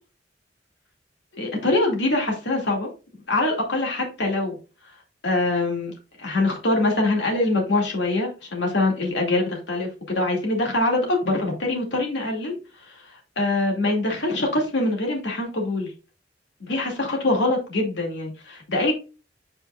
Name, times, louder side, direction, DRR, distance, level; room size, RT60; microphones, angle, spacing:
voice 1, 1.3-2.9 3.3-4.6 5.2-15.9 16.6-18.9, left 2 dB, 80° left, 2.4 m, -24 dB
7.9 x 5.1 x 2.5 m
head